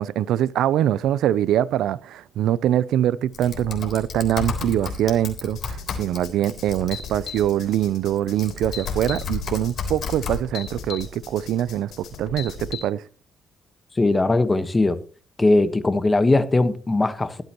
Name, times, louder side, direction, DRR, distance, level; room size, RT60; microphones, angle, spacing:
voice 1, 0.0-13.0, right 11 dB, 80° right, 0.4 m, -23 dB
Typing, 3.3-7.5 8.2-10.4, left 4 dB, 55° left, 3.5 m, -32 dB
sound 1, 5.5-12.8, left 7 dB, 80° left, 5.2 m, -37 dB
voice 2, 14.0-15.0 15.4-17.4, left 2 dB, 20° left, 1.3 m, -19 dB
22.0 x 8.0 x 3.0 m
cardioid pair, 90°, 0 cm